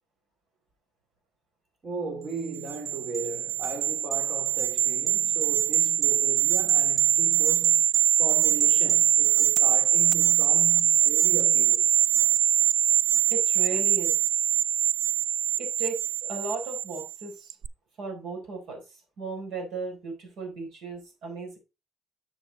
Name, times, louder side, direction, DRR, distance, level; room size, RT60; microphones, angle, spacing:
voice 1, 1.8-7.9 8.2-11.9, right 3 dB, 25° right, 2.6 m, -37 dB
sound 1, 2.5-17.2 17.5-17.7, right 10 dB, 45° right, 0.3 m, -23 dB
voice 2, 13.3-14.2 15.6-17.6 18.0-18.8 19.2-21.6, right 3 dB, 60° right, 4.4 m, -36 dB
7.1 x 7.0 x 4.0 m
cardioid pair, 175°, 0 cm